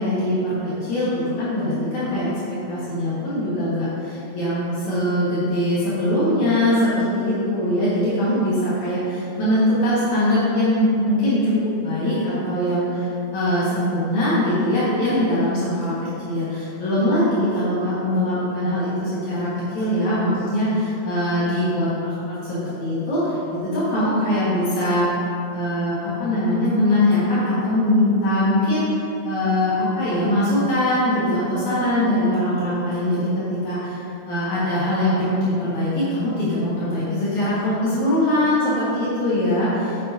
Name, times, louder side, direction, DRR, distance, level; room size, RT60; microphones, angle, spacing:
voice 1, 0.0-15.9 16.2-25.1 25.5-40.0, left 1 dB, 70° left, -11 dB, 3.1 m, -22 dB
9.5 x 8.8 x 2.8 m, 2.8 s
omnidirectional pair, 3.5 m